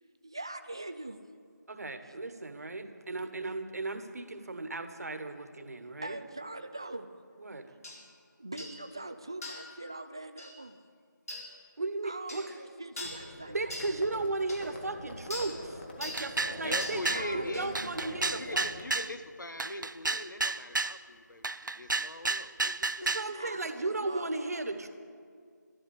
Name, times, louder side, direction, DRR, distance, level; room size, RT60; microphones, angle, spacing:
voice 1, 0.2-1.2 6.0-7.1 8.4-10.8 12.0-13.7 17.1-17.9 23.2-24.8, right 2 dB, 15° right, 8 dB, 0.3 m, -42 dB
voice 2, 1.7-6.2 7.4-7.7 11.8-12.5 13.5-18.7 23.0-24.9, right 2 dB, 55° right, 8 dB, 1.4 m, -36 dB
sound 1, 7.8-8.0 8.6-8.8 9.4-9.7 10.4-10.5 11.3-11.5 12.3-12.5 13.0-13.2 13.7-13.9 14.5-14.6 15.3-15.5 16.0-16.3 16.8-17.0 17.5-17.7, left 2 dB, 50° left, 3.8 m, -41 dB
Livestock farm animals working animals, 13.0-18.8, left 1 dB, 30° left, 1.5 m, -44 dB
sound 2, 16.1-17.3 17.7-19.1 19.6-21.0 21.4-23.3, right 3 dB, 90° right, 0.6 m, -31 dB
voice 3, 16.6-17.7 18.1-23.7, left 1 dB, 80° left, 8 dB, 1.5 m, -41 dB
12.5 x 11.5 x 8.3 m, 2.1 s
figure-of-eight pair, 170°, 10 cm